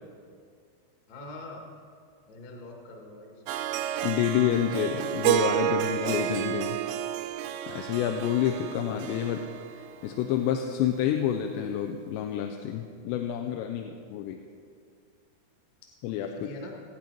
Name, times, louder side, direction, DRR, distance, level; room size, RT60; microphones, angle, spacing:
voice 1, 1.1-1.7 2.3-3.4 16.4-16.7, left 2 dB, 55° left, 1 dB, 2.0 m, -43 dB
Harp, 3.5-10.6, right 12 dB, 85° right, 2.8 m, -31 dB
voice 2, 4.0-6.8 7.7-9.4 9.8-14.4 16.0-16.5, left 10 dB, 85° left, 4 dB, 2.8 m, -28 dB
18.5 x 8.5 x 4.5 m, 2.2 s
omnidirectional pair, 5.1 m